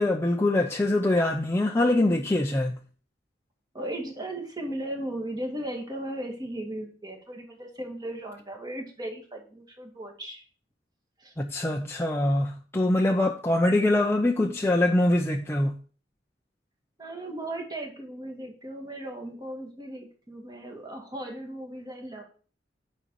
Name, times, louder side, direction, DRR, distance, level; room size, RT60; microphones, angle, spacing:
voice 1, 0.0-2.8 11.4-15.7, left 1 dB, 15° left, 0.6 m, -24 dB
voice 2, 3.7-10.4 11.2-11.3 17.0-22.2, right 1 dB, 20° right, 2.1 m, -36 dB
9.7 x 5.4 x 4.8 m
head